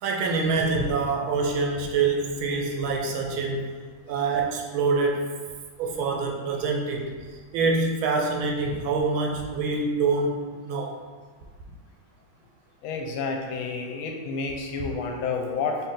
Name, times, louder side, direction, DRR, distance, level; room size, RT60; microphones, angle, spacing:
voice 1, 0.0-3.7 4.1-5.3 5.8-7.1 7.5-10.9, right 4 dB, 75° right, 1 dB, 1.4 m, -25 dB
voice 2, 12.8-15.8, left 4 dB, 90° left, 2 dB, 1.5 m, -30 dB
4.4 x 3.2 x 3.7 m, 1.5 s
omnidirectional pair, 2.3 m